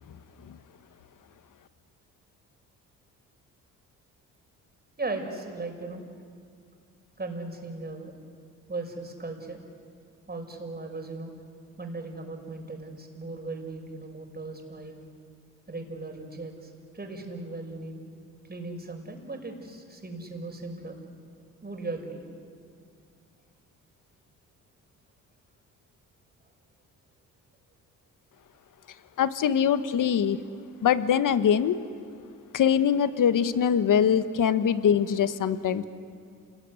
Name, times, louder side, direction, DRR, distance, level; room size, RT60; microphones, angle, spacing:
voice 1, 5.0-6.0 7.2-8.1 8.7-9.6 10.3-11.3 11.8-15.0 15.7-18.0 18.5-21.0 21.6-22.2, right 3 dB, 25° right, 3 dB, 6.0 m, -37 dB
voice 2, 29.2-30.4 30.8-31.8 32.5-35.8, left 8 dB, 60° left, 12 dB, 1.4 m, -23 dB
28.0 x 20.5 x 9.8 m, 2.3 s
supercardioid pair, 65°, 37 cm